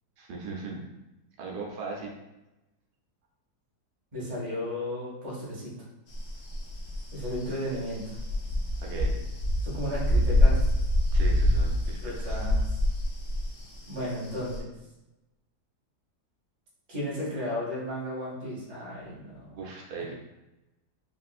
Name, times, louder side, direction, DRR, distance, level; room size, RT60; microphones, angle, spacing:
voice 1, 0.2-0.8 1.4-2.1 7.7-7.8 8.8-9.2 11.1-12.5 19.5-20.1, right 4 dB, 80° right, -1 dB, 1.2 m, -38 dB
voice 2, 4.1-5.7 7.1-8.2 9.6-10.7 12.0-12.6 13.9-14.7 16.9-19.6, left 1 dB, 30° right, -6 dB, 0.8 m, -34 dB
sound 1, 6.1-14.6, left 1 dB, 60° left, 0.8 m, -26 dB
3.6 x 2.4 x 2.3 m, 0.99 s
omnidirectional pair, 1.7 m